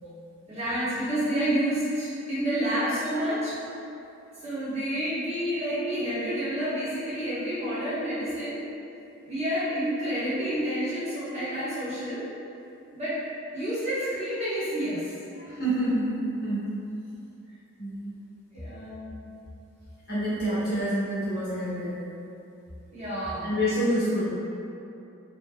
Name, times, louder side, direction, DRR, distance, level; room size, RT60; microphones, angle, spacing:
voice 1, 0.5-3.6 4.4-8.6 9.2-12.2 12.9-13.2 13.5-15.1 18.5-19.3 22.9-23.5, equal, 30° right, -11 dB, 0.9 m, -29 dB
voice 2, 15.3-16.7 17.8-18.2 20.1-22.0 23.4-24.3, equal, 45° left, -12 dB, 1.2 m, -27 dB
3.1 x 2.1 x 3.6 m, 2.7 s
head